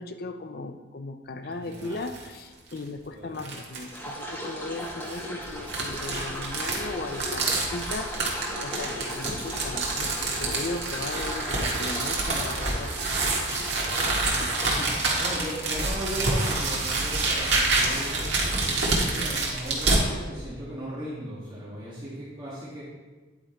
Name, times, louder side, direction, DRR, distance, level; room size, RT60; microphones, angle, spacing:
voice 1, 0.0-8.2 8.6-12.9 13.5-14.0 14.4-14.5, left 2 dB, 50° left, 9 dB, 0.5 m, -37 dB
voice 2, 1.4-2.0 3.1-3.4 9.1-9.2 14.6-22.8, equal, 25° right, -9 dB, 1.7 m, -37 dB
sound 1, 1.7-2.3 2.7-2.8 3.4-4.0 4.8-20.0, right 3 dB, 65° right, 1.7 m, -27 dB
sound 2, 3.9-14.7, equal, 10° left, 1.1 m, -37 dB
10.0 x 5.0 x 4.4 m, 1.3 s
head